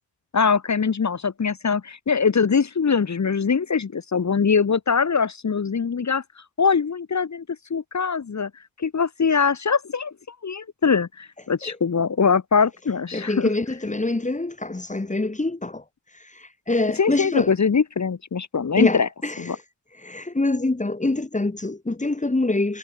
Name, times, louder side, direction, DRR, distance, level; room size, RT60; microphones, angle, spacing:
voice 1, 0.3-6.2 6.6-7.4 7.7-8.5 8.8-10.1 10.4-13.5 17.0-19.1 19.4-19.6, left 5 dB, 40° left, 1.8 m, -22 dB
voice 2, 13.1-15.8 16.4-17.5 18.8-19.4 20.0-22.8, left 2 dB, 15° left, 3.0 m, -25 dB
wide cardioid pair, 110°, 44 cm